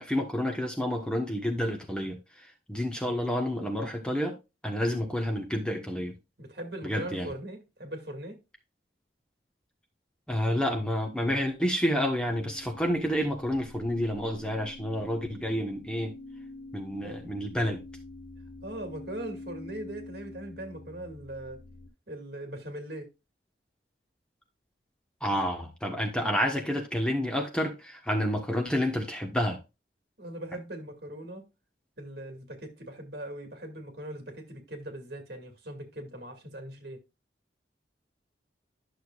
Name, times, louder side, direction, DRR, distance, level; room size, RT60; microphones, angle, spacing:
voice 1, 0.0-2.2 2.7-4.4 4.6-6.1 6.8-7.3 10.3-16.1 16.7-17.8 25.2-29.6, equal, 5° left, 1.1 m, -29 dB
voice 2, 6.4-8.4 17.0-17.2 18.6-21.6 22.1-23.1 30.2-31.4 32.0-37.0, right 1 dB, 60° right, 2.2 m, -40 dB
sound 1, 11.8-21.9, left 2 dB, 75° left, 1.8 m, -46 dB
11.5 x 6.6 x 2.4 m
head